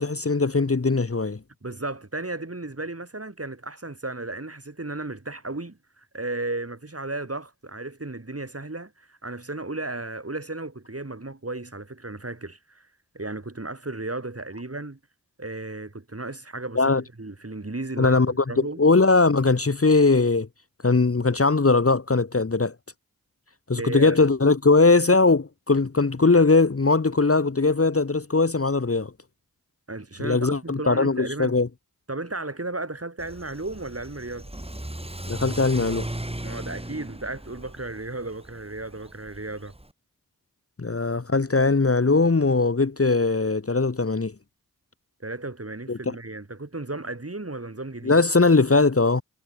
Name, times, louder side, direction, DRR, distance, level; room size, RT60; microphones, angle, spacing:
voice 1, 0.0-1.4 16.8-17.0 18.0-20.5 20.8-22.7 23.7-29.1 30.2-31.7 35.3-36.1 40.8-44.3 45.9-46.1 48.0-49.2, left 3 dB, 40° left, 1.0 m, -20 dB
voice 2, 1.6-12.9 13.1-15.0 15.4-18.1 18.5-18.8 23.8-24.2 29.9-31.5 32.1-34.5 36.4-39.7 45.2-48.2, right 2 dB, 40° right, 2.9 m, -34 dB
Car / Accelerating revving vroom, 33.2-39.9, right 1 dB, 15° right, 2.5 m, -37 dB
wide cardioid pair, 40°, 37 cm